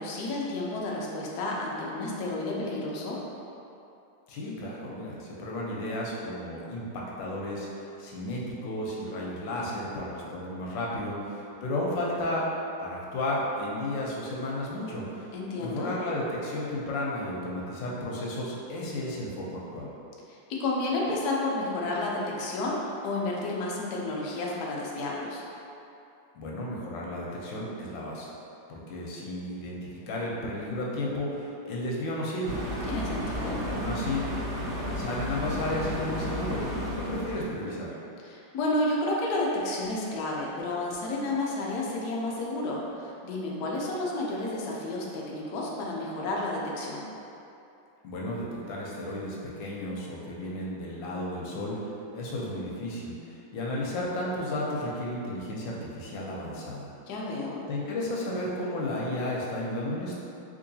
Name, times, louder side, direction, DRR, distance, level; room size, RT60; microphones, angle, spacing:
voice 1, 0.0-3.2 15.3-15.9 20.3-25.4 32.9-33.6 38.2-47.1 57.1-57.6, left 2 dB, 90° left, -3 dB, 0.8 m, -31 dB
voice 2, 4.3-12.5 12.8-15.3 15.6-19.9 26.3-28.3 28.7-32.6 33.6-34.2 34.7-36.6 36.9-38.0 48.0-51.9 52.1-56.9 57.7-60.2, left 1 dB, 70° left, -4 dB, 1.2 m, -33 dB
sound 1, 32.4-37.6, equal, 50° right, 0.8 m, -33 dB
3.7 x 3.0 x 2.6 m, 2.7 s
omnidirectional pair, 2.3 m